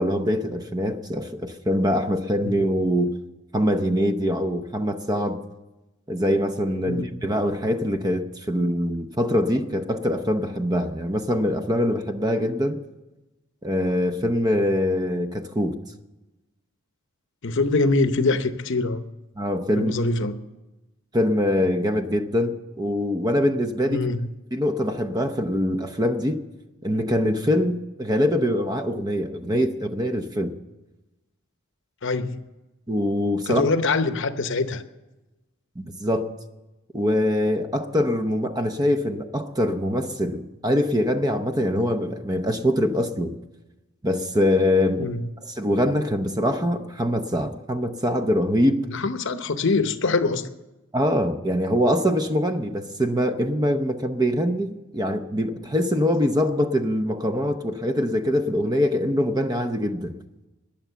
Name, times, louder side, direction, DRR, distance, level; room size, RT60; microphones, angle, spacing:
voice 1, 0.0-3.1 3.5-5.4 6.1-12.8 13.6-15.7 19.4-19.9 21.1-24.1 24.5-26.4 26.8-30.5 32.9-33.6 35.8-36.3 36.9-43.3 44.0-45.1 45.4-48.9 50.9-60.1, equal, 20° right, 0.7 m, -23 dB
voice 2, 17.4-19.0 19.8-20.3 23.9-24.2 32.0-32.4 33.5-34.8 45.0-45.2 48.9-50.5, left 3 dB, 55° left, 0.8 m, -24 dB
20.5 x 7.3 x 6.9 m
head